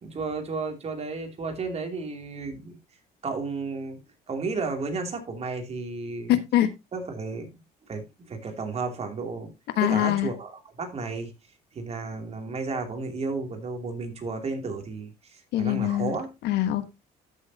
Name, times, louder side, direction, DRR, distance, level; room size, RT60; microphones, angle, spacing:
voice 1, 0.0-2.8 3.2-4.0 4.3-6.4 6.9-7.6 7.9-9.5 9.8-11.3 11.7-16.3, right 4 dB, 40° right, 2.7 m, -33 dB
voice 2, 6.3-6.7 9.8-10.3 15.5-16.1 16.4-16.9, left 13 dB, 80° left, 1.3 m, -23 dB
13.5 x 6.6 x 2.8 m
cardioid pair, 110°, 17 cm